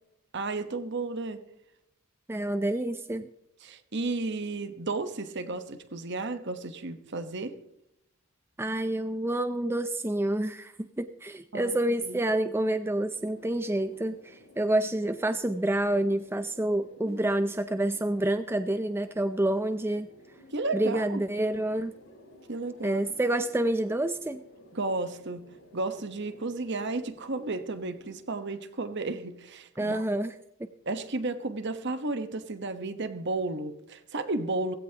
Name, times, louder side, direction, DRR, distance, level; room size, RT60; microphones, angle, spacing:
voice 1, 0.3-1.4 3.6-7.6 11.5-11.8 12.0-12.2 17.1-17.2 20.5-21.2 22.5-23.1 24.7-30.0 30.8-34.8, right 3 dB, 50° right, 1.1 m, -33 dB
voice 2, 2.3-3.3 8.6-20.1 20.7-21.9 22.8-24.4 29.8-30.3 30.6-30.7, right 1 dB, 10° right, 0.4 m, -28 dB
sound 1, 13.1-28.2, left 1 dB, 65° left, 4.8 m, -55 dB
17.5 x 16.0 x 2.9 m
head